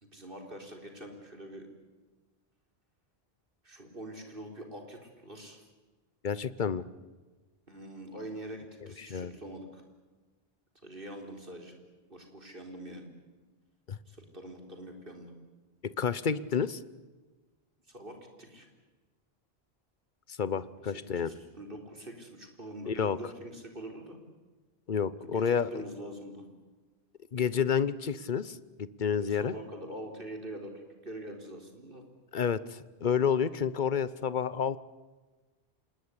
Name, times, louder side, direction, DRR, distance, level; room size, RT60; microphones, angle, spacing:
voice 1, 0.0-1.7 3.6-5.6 7.7-9.8 10.8-11.7 12.1-13.1 14.1-15.3 17.9-18.7 20.8-24.2 25.2-26.5 29.1-32.0, right 1 dB, 60° right, 3 dB, 4.4 m, -44 dB
voice 2, 6.2-6.8 9.0-9.3 13.9-14.0 15.8-16.8 20.3-21.3 22.8-23.2 24.9-25.8 27.3-29.5 32.3-34.8, left 7 dB, 50° left, 17 dB, 1.1 m, -30 dB
27.0 x 20.0 x 9.8 m, 1.3 s
omnidirectional pair, 1.1 m